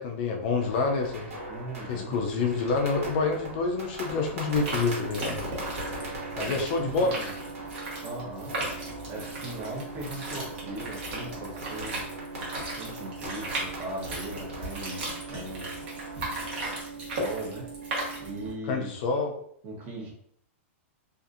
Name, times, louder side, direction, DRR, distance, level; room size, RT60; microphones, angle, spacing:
voice 1, 0.0-1.3 1.9-5.4 6.4-7.2 18.7-19.3, left 4 dB, 40° left, 2 dB, 0.4 m, -27 dB
sound 1, 0.6-16.8, right 1 dB, 85° right, 1.3 m, -41 dB
voice 2, 1.5-2.2 6.3-7.3 8.0-8.5 9.1-12.1 12.5-15.8 17.0-17.7 18.2-19.0 19.6-20.1, right 1 dB, 25° right, -2 dB, 0.8 m, -39 dB
sound 2, 4.5-18.5, right 2 dB, 50° right, 1.1 m, -36 dB
2.6 x 2.5 x 2.4 m, 0.65 s
hypercardioid pair, 160°, 7 cm